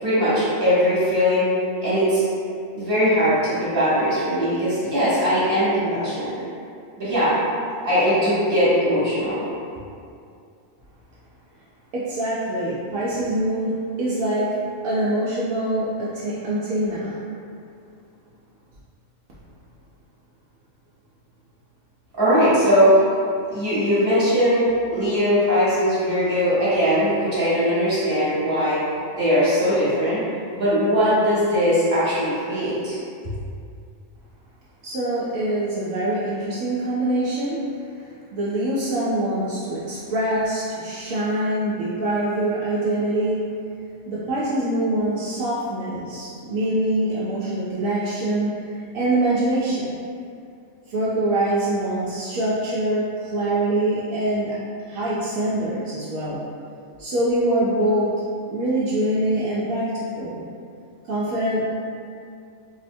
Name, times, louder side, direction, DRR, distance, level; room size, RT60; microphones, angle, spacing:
voice 1, 0.0-1.5 1.8-2.2 2.7-6.4 7.0-7.4 7.8-9.4 22.2-22.9 23.5-24.6 24.9-28.8 29.1-30.2 30.5-33.0, equal, 45° right, -11 dB, 1.3 m, -20 dB
voice 2, 11.9-14.6 14.8-17.2 34.8-37.6 37.9-43.5 44.1-48.7 48.9-49.9 50.9-54.5 54.9-56.4 57.0-58.2 58.5-60.4 61.0-61.6, right 1 dB, 80° right, -9 dB, 1.0 m, -24 dB
4.1 x 2.1 x 2.6 m, 2.4 s
omnidirectional pair, 1.4 m